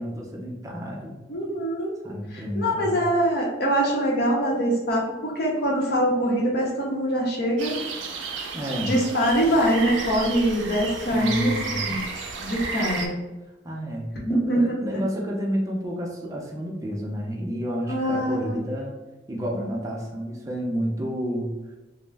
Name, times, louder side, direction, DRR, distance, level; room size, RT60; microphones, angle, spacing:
voice 1, 0.0-1.2 2.0-3.0 8.5-9.0 11.0-11.9 13.6-18.9 19.3-21.5, equal, 20° right, -2 dB, 0.4 m, -30 dB
voice 2, 1.3-1.9 2.3-7.7 8.8-12.0 12.4-13.1 14.1-15.0 17.9-18.6, equal, 60° left, -2 dB, 0.7 m, -24 dB
sound 1, 7.6-13.1, right 4 dB, 90° right, 0.4 m, -32 dB
2.3 x 2.0 x 3.3 m, 1.1 s
head